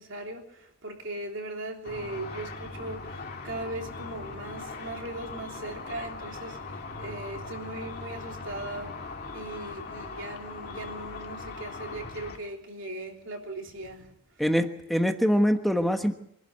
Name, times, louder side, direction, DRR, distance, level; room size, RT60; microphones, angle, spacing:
voice 1, 0.0-8.9 9.3-14.1, right 2 dB, 60° right, 3.5 m, -39 dB
Car / Traffic noise roadway noise / Engine, 1.8-12.4, left 3 dB, 45° left, 2.3 m, -40 dB
voice 2, 14.4-16.2, equal, ahead, 1.2 m, -24 dB
25.0 x 12.0 x 9.5 m
head